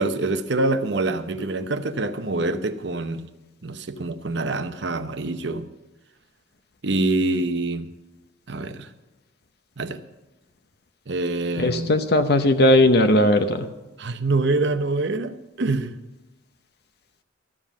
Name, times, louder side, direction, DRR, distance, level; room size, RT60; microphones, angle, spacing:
voice 1, 0.0-3.2 3.6-5.6 6.8-7.9 8.5-8.9 9.8-10.0 11.1-11.9 14.0-15.9, right 2 dB, 60° right, 10 dB, 0.8 m, -25 dB
voice 2, 11.6-13.7, left 1 dB, 55° left, 8 dB, 0.8 m, -18 dB
13.5 x 7.4 x 7.3 m, 1.1 s
head